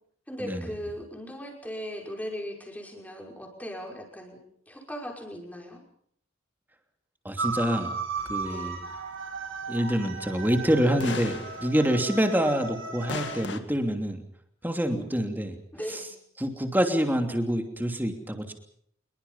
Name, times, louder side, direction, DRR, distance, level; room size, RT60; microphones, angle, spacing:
voice 1, 0.3-4.4 4.7-5.8 8.5-8.8 14.7-15.1 15.7-16.1, equal, 5° left, 1 dB, 5.6 m, -38 dB
voice 2, 7.2-8.0 8.3-8.8 9.7-14.2 14.6-15.5 15.9-16.0 16.4-18.5, equal, 10° right, 5 dB, 2.9 m, -26 dB
sound 1, 7.4-13.4, right 4 dB, 70° right, 4.8 m, -35 dB
sound 2, 8.2-9.9 10.3-10.4 11.0-12.8 13.1-13.6, left 3 dB, 55° left, 2.1 m, -38 dB
26.5 x 22.5 x 5.6 m, 0.65 s
head